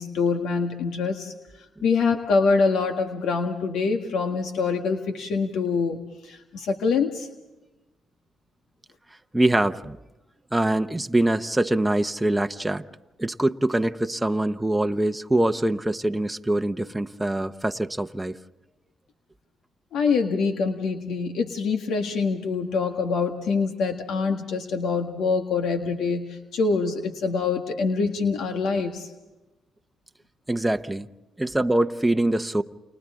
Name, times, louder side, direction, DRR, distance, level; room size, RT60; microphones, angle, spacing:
voice 1, 0.0-1.3 1.8-7.3 19.9-29.1, left 4 dB, 75° left, 1.8 m, -25 dB
voice 2, 9.3-10.0 10.5-12.8 13.2-18.4 30.5-31.1 31.4-32.6, right 1 dB, 10° right, 0.9 m, -24 dB
30.0 x 29.0 x 3.8 m
cardioid pair, 90°, 0 cm